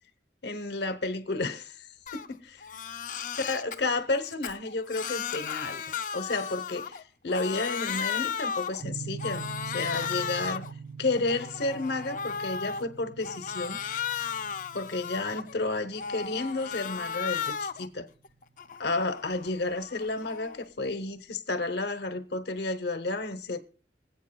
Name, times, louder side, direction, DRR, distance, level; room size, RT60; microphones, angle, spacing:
voice 1, 0.4-1.9 2.1-2.6 3.4-5.8 6.1-10.7 11.0-13.8 14.7-18.1 18.8-23.6, left 3 dB, 65° left, 0.9 m, -31 dB
Crying sobbing, 2.1-2.3 2.6-3.8 4.2-7.0 7.3-8.8 9.2-10.7 11.1-12.8 13.2-15.5 15.9-17.9 18.2-20.6, left 7 dB, 45° left, 0.5 m, -35 dB
sound 1, 8.8-17.5, right 5 dB, 70° right, 0.7 m, -43 dB
24.5 x 8.2 x 2.3 m
head